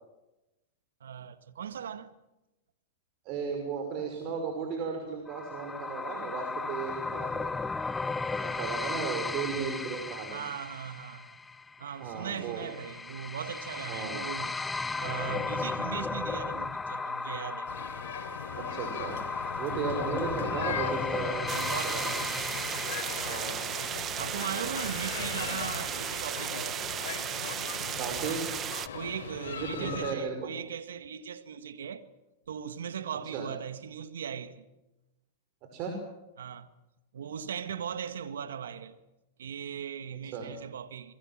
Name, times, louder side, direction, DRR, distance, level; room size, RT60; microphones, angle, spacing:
voice 1, 1.0-2.1 10.3-11.3 11.8-14.6 15.0-17.7 21.5-22.6 24.2-26.9 28.9-32.0 32.5-34.7 36.4-36.7 37.1-39.0 39.4-41.1, right 8 dB, 80° right, 1.8 m, -38 dB
voice 2, 3.2-7.5 8.4-10.4 12.0-12.7 13.9-14.2 18.6-19.2 19.6-22.1 23.2-23.7 28.0-28.4 29.6-30.5 33.3-33.5 35.7-35.9 40.3-40.5, right 5 dB, 45° right, 5.8 m, -35 dB
sound 1, 5.3-23.9, left 3 dB, 10° left, 0.9 m, -35 dB
sound 2, 17.7-30.1, left 8 dB, 75° left, 3.5 m, -39 dB
sound 3, 21.5-28.9, right 10 dB, 30° right, 1.2 m, -35 dB
27.0 x 22.0 x 7.6 m
hypercardioid pair, 115°, 0 cm